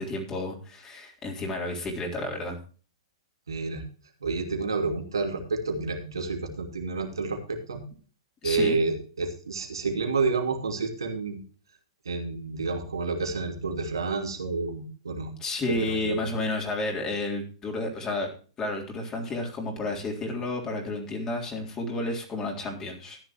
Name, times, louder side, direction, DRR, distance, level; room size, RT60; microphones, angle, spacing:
voice 1, 0.0-2.6 8.4-8.8 15.4-18.3 18.6-23.2, left 2 dB, 25° left, 0 dB, 3.7 m, -31 dB
voice 2, 3.5-3.8 4.2-7.8 8.4-11.4 12.1-15.3 15.8-16.2, right 4 dB, 80° right, 4 dB, 2.7 m, -29 dB
14.0 x 10.5 x 3.0 m, 0.39 s
figure-of-eight pair, 110°, 2 cm